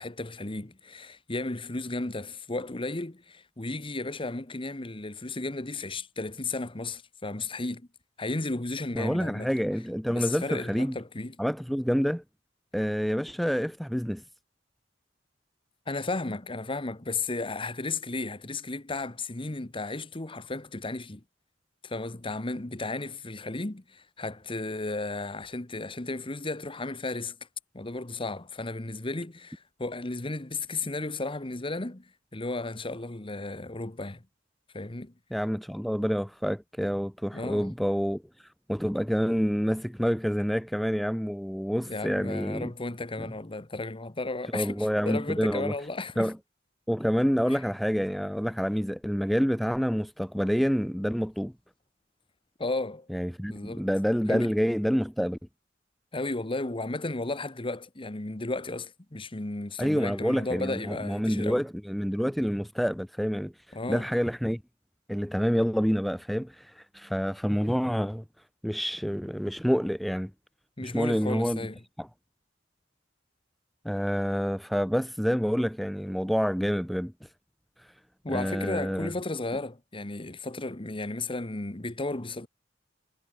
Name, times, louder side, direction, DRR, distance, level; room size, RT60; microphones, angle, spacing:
voice 1, 0.0-7.9 8.2-9.5 10.1-11.4 15.9-21.2 21.8-27.4 27.7-34.2 34.7-35.1 37.3-37.7 41.9-46.3 47.5-47.6 52.6-53.1 53.5-53.9 54.3-54.5 56.1-61.6 63.7-64.1 70.8-71.8 78.2-82.5, left 2 dB, 30° left, 1.3 m, -34 dB
voice 2, 9.0-11.0 11.4-12.2 12.7-14.2 35.3-42.7 44.5-45.7 46.2-46.4 46.9-51.5 53.1-55.4 59.8-64.6 65.1-68.2 68.6-70.3 70.8-71.7 72.0-72.1 73.8-77.3 77.8-77.9 78.3-79.1, equal, ahead, 0.4 m, -28 dB
head